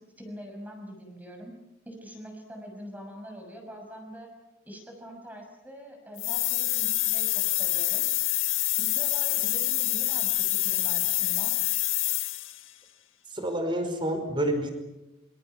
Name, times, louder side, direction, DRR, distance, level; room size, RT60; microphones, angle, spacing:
voice 1, 0.2-1.5 1.8-4.3 4.6-8.1 8.8-11.5, equal, 10° right, 3 dB, 6.3 m, -44 dB
sound 1, 6.2-12.6, left 16 dB, 75° left, 1.5 m, -27 dB
voice 2, 13.3-14.7, right 1 dB, 25° right, 7 dB, 4.9 m, -28 dB
27.5 x 27.0 x 5.9 m, 0.97 s
head